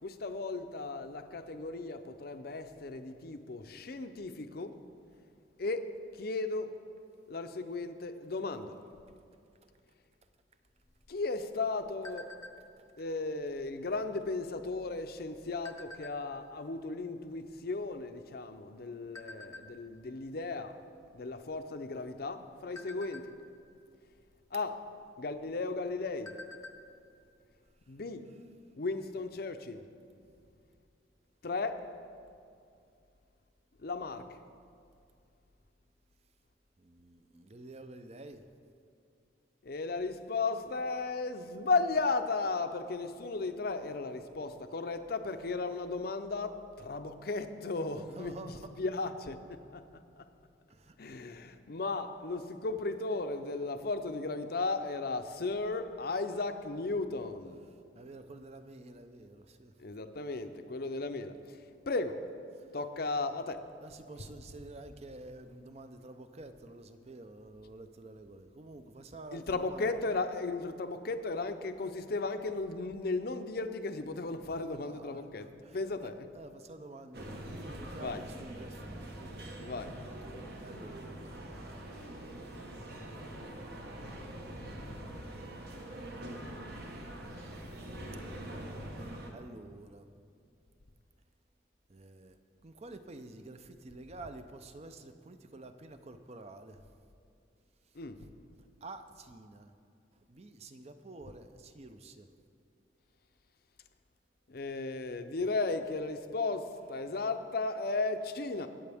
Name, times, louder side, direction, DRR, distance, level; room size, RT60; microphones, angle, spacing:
voice 1, 0.0-4.8 5.6-6.7 7.3-8.8 11.1-12.3 13.0-20.8 21.1-23.3 24.5-24.8 25.2-26.4 27.9-28.3 28.8-29.8 31.4-31.9 33.8-34.4 39.6-48.5 48.8-49.4 49.7-49.8 50.2-50.3 51.0-57.6 59.8-61.6 61.9-62.3 62.7-63.7 69.3-75.5 75.7-76.1 78.0-78.2 79.6-80.0 84.0-84.1 84.7-84.9 88.0-88.2 98.0-98.2 104.5-108.7, left 3 dB, 55° left, 0.6 m, -35 dB
sound 1, 10.9-12.9 13.3-13.6 13.9-14.2 14.9-16.5 17.1-17.2 17.4-18.7 19.1-19.6 20.2-20.4 20.7-20.9 21.4-21.9 22.3-23.8 24.8-24.9 25.4-25.5 25.8-26.9 27.2-27.3 27.7-27.8, left 2 dB, 15° left, 0.7 m, -49 dB
voice 2, 36.8-38.5 48.0-48.7 50.7-51.0 57.7-59.8 62.5-62.7 63.8-69.9 74.7-79.7 80.6-81.4 84.1-85.6 86.4-88.0 88.3-90.1 91.9-92.4 92.6-96.8 97.9-98.0 98.8-99.7 100.1-102.3, right 2 dB, 35° right, 0.6 m, -50 dB
sound 2, 77.1-89.3, right 1 dB, 60° right, 1.3 m, -44 dB
22.5 x 7.7 x 3.5 m
head